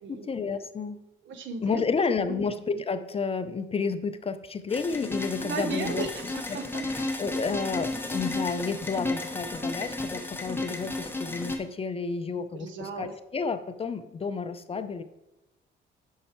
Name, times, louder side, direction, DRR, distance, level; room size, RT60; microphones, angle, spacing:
voice 1, 0.1-1.0 1.6-6.1 6.5-15.0, left 5 dB, 30° left, 11 dB, 0.5 m, -31 dB
voice 2, 1.2-1.8 2.2-2.4 5.4-6.9 12.5-13.1, right 4 dB, 70° right, 7 dB, 1.0 m, -36 dB
sound 1, 4.7-11.6, left 2 dB, 10° left, 1.0 m, -33 dB
6.6 x 5.5 x 4.3 m, 0.91 s
cardioid pair, 90°, 20 cm